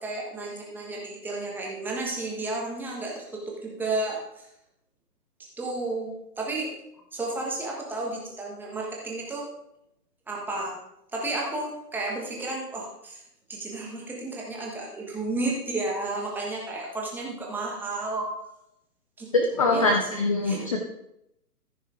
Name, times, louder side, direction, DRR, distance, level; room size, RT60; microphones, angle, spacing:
voice 1, 0.0-4.4 5.6-6.7 7.1-9.5 10.3-10.7 11.1-13.2 13.5-18.2 19.2-19.3 19.7-20.1 20.4-20.7, right 2 dB, 5° right, -3 dB, 1.4 m, -32 dB
voice 2, 19.3-20.8, left 2 dB, 20° left, 2 dB, 0.6 m, -23 dB
14.0 x 5.5 x 4.8 m, 0.81 s
hypercardioid pair, 145°, 49 cm